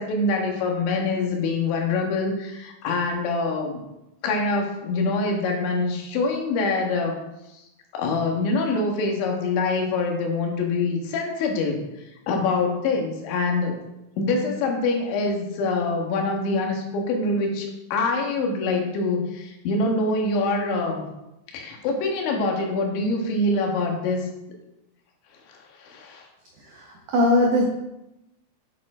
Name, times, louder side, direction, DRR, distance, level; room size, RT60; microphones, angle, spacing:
voice 1, 0.0-3.8 4.2-7.2 7.5-7.6 7.9-13.8 14.2-21.0 21.5-24.3 25.5-26.3, left 3 dB, 75° left, 1 dB, 3.8 m, -25 dB
voice 2, 26.6-27.6, left 1 dB, 90° right, -1 dB, 1.7 m, -21 dB
9.8 x 7.4 x 4.9 m, 0.92 s
omnidirectional pair, 5.6 m